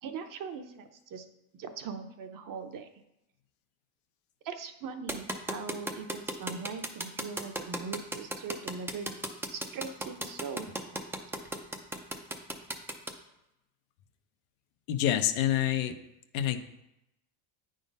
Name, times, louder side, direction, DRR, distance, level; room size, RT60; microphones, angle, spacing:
voice 1, 0.0-1.3 1.6-2.9 4.4-11.0, right 6 dB, 45° right, 7 dB, 0.8 m, -41 dB
sound 1, 5.1-13.1, right 1 dB, 5° right, 0.4 m, -35 dB
voice 2, 14.9-15.9 16.3-16.6, left 11 dB, 85° left, 8 dB, 0.9 m, -27 dB
8.9 x 3.8 x 5.3 m, 0.88 s
cardioid pair, 140°, 46 cm